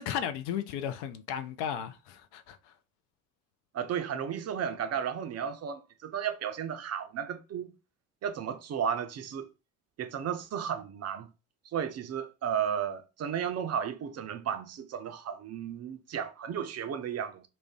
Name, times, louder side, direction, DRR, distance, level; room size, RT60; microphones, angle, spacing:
voice 1, 0.0-2.7, left 9 dB, 65° left, 0.6 m, -35 dB
voice 2, 3.7-7.7 8.2-9.5 10.0-11.3 11.7-17.4, right 8 dB, 40° right, 0.5 m, -34 dB
2.4 x 2.0 x 3.5 m
hypercardioid pair, 50°, 43 cm